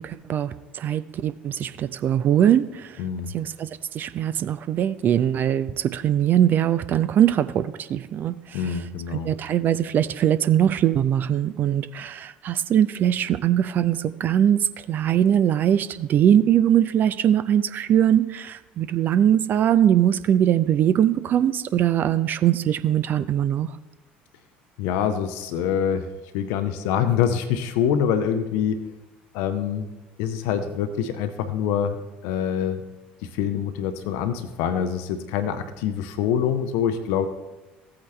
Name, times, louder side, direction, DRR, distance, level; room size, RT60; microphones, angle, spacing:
voice 1, 0.0-3.0 3.3-8.6 9.1-23.7, right 10 dB, 40° right, 13 dB, 0.3 m, -21 dB
voice 2, 3.0-3.3 8.5-9.3 24.8-26.1 26.3-28.8 29.3-29.9 30.2-32.8 33.2-37.3, left 8 dB, 55° left, 9 dB, 0.6 m, -25 dB
15.5 x 8.6 x 2.2 m, 1.1 s
figure-of-eight pair, 60°, 5 cm